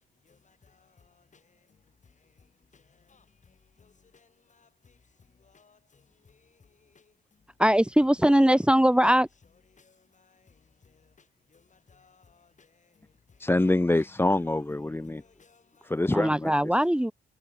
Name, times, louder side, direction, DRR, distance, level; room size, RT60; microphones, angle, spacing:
voice 1, 0.0-5.0 5.3-7.1 9.7-13.5 15.0-15.9 16.8-16.9, left 5 dB, 40° left, 4.1 m, -62 dB
voice 2, 7.6-9.3 16.1-17.1, equal, 5° right, 2.0 m, -21 dB
voice 3, 13.4-15.2 15.8-16.5, left 2 dB, 10° left, 0.8 m, -25 dB
supercardioid pair, 65°, 19 cm